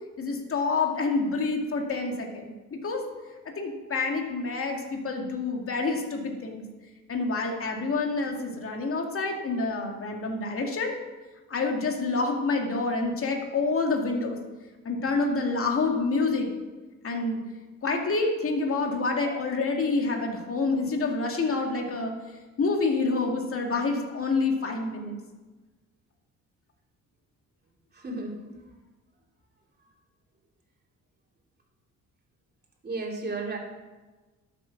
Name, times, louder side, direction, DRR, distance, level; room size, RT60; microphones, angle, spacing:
voice 1, 0.2-3.0 3.6-6.6 7.1-10.9 11.5-14.4 14.8-16.5 17.0-17.4 17.8-22.1 22.6-25.2, left 3 dB, 45° left, 2 dB, 2.3 m, -27 dB
voice 2, 27.9-28.5 32.8-33.6, right 3 dB, 35° right, -1 dB, 3.2 m, -33 dB
12.0 x 7.6 x 5.9 m, 1.3 s
cardioid pair, 90°, 30 cm